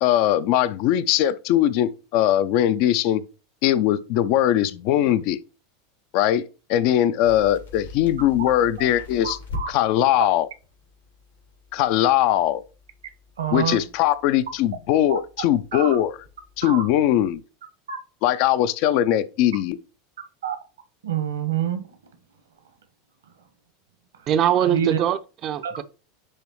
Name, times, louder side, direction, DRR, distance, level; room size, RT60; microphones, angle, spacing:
voice 1, 0.0-3.2 3.6-5.4 6.1-6.4 6.7-9.4 9.7-10.5 11.7-12.6 13.5-16.2 16.6-17.4 18.2-19.8, left 12 dB, 50° left, 0.5 m, -20 dB
sound 1, 7.2-17.4, left 3 dB, 80° left, 2.2 m, -43 dB
voice 2, 9.2-9.7 13.4-13.8 15.1-15.2 15.7-15.9 16.6-16.8 17.9-18.0 20.4-20.6 21.0-21.8 24.6-25.0 25.6-25.7, right 8 dB, 70° right, 1.1 m, -26 dB
voice 3, 24.3-25.8, right 10 dB, 40° right, 0.5 m, -22 dB
9.9 x 3.4 x 3.0 m
figure-of-eight pair, 85°, 0 cm